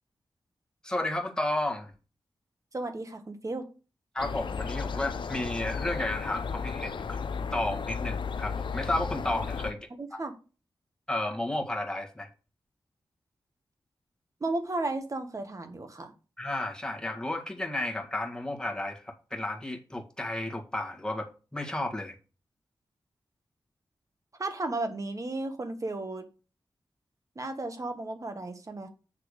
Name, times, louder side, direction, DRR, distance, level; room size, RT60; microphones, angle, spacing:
voice 1, 0.8-1.9 4.1-9.8 10.1-10.2 11.1-12.3 16.4-22.2, left 1 dB, 10° left, 1.7 m, -32 dB
voice 2, 2.7-3.7 10.0-10.3 14.4-16.1 24.4-26.2 27.3-28.9, right 2 dB, 40° right, 1.5 m, -34 dB
sound 1, 4.2-9.7, left 5 dB, 70° left, 0.6 m, -34 dB
8.6 x 3.4 x 6.5 m
wide cardioid pair, 80°, 9 cm